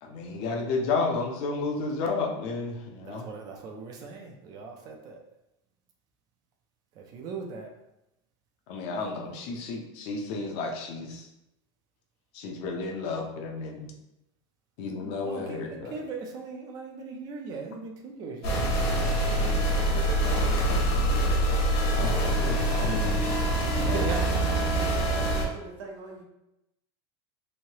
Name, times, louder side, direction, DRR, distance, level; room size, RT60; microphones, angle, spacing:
voice 1, 0.0-3.3 8.7-11.3 12.3-13.9 14.8-15.9 21.9-23.2 23.8-24.1, left 3 dB, 40° left, 1 dB, 0.5 m, -32 dB
voice 2, 3.0-5.2 7.0-7.7 15.2-18.7 18.9-19.6 19.9-20.6 20.9-21.5 21.8-22.7 23.8-24.7, right 4 dB, 25° right, 2 dB, 0.3 m, -40 dB
sound 1, 18.4-25.4, right 1 dB, 65° left, 1.2 m, -25 dB
voice 3, 24.5-26.2, right 3 dB, 75° right, -1 dB, 0.9 m, -42 dB
3.1 x 2.6 x 2.8 m, 0.87 s
supercardioid pair, 175°, 15 cm